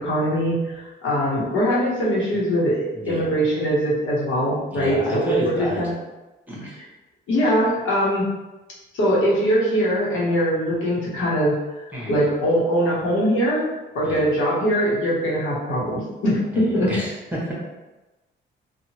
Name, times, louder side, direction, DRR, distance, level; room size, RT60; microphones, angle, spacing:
voice 1, 0.0-5.9 7.3-8.3 8.9-11.5 12.1-13.7 13.9-16.9, equal, 80° left, -6 dB, 1.0 m, -22 dB
voice 2, 2.9-3.3 4.7-5.8 6.5-6.7 11.9-12.3 14.0-14.3 16.5-17.5, right 1 dB, 10° right, -6 dB, 1.1 m, -30 dB
2.8 x 2.3 x 2.8 m, 1.1 s
cardioid pair, 90°, 20 cm